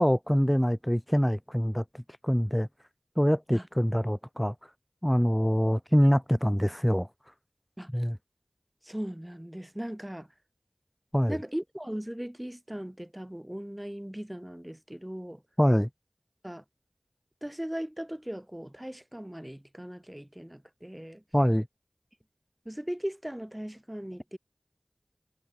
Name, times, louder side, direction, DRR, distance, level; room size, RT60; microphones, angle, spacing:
voice 1, 0.0-2.7 3.2-4.5 5.0-7.1 7.9-8.2 11.1-11.4 15.6-15.9 21.3-21.7, equal, 5° left, 2.7 m, -25 dB
voice 2, 8.8-10.3 11.3-15.4 16.4-16.6 17.4-21.2 22.7-24.4, equal, 10° right, 3.5 m, -38 dB
wide cardioid pair, 45°, 0 cm